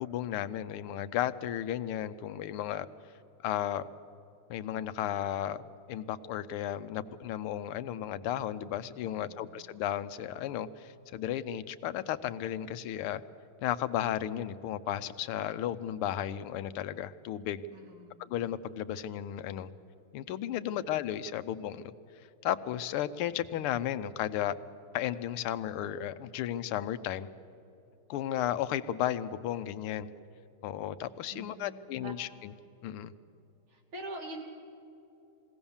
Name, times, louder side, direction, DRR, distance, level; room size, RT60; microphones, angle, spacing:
voice 1, 0.0-2.9 3.4-3.9 4.5-5.6 5.9-13.2 13.6-17.6 18.3-19.7 20.1-21.9 22.4-24.6 24.9-27.3 28.1-30.1 30.6-32.5 32.8-33.1, left 11 dB, 90° left, 13 dB, 1.6 m, -34 dB
voice 2, 9.0-9.4 17.7-18.2 20.6-20.9 31.3-32.1 33.7-34.4, right 1 dB, 70° right, 0 dB, 3.6 m, -45 dB
21.5 x 17.0 x 7.1 m, 2.9 s
omnidirectional pair, 2.3 m